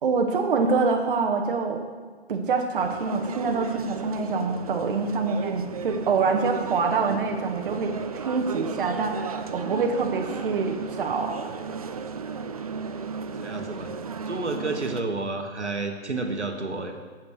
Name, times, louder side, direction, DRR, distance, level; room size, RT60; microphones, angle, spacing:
voice 1, 0.0-1.8 2.3-11.4, right 4 dB, 50° right, 3 dB, 0.9 m, -26 dB
sound 1, 2.8-15.0, right 5 dB, 35° right, 0.4 m, -34 dB
voice 2, 13.4-13.9 14.3-16.9, right 3 dB, 85° right, 4 dB, 1.3 m, -30 dB
7.5 x 7.4 x 6.2 m, 1.4 s
figure-of-eight pair, 130°, 34 cm